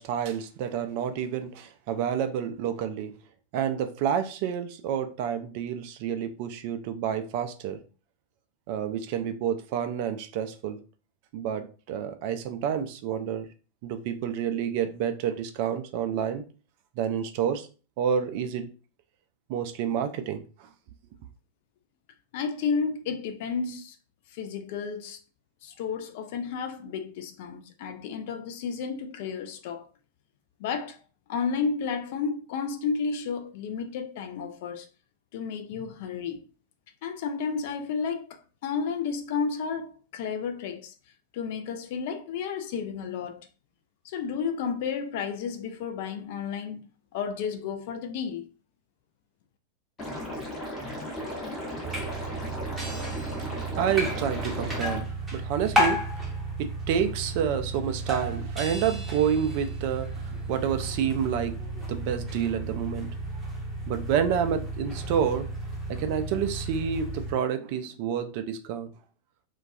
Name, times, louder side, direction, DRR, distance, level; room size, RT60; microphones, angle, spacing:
voice 1, 0.0-3.1 3.5-7.8 8.7-10.8 11.3-13.5 13.8-16.4 17.0-17.7 18.0-18.7 19.5-20.4 53.8-56.0 56.6-61.6 61.9-63.1 63.9-65.5 65.9-68.9, right 8 dB, 45° right, 0.3 m, -29 dB
voice 2, 22.3-24.0 24.3-25.2 25.6-29.9 30.6-31.0 31.3-34.9 35.3-36.4 37.0-40.9 41.3-43.4 44.0-46.8 47.1-48.4, left 6 dB, 50° left, 0.3 m, -32 dB
Liquid, 50.0-55.0, left 1 dB, 25° left, 0.8 m, -36 dB
sound 1, 51.8-67.3, right 1 dB, 10° right, 0.7 m, -33 dB
2.2 x 2.2 x 2.5 m
figure-of-eight pair, 90°, 0 cm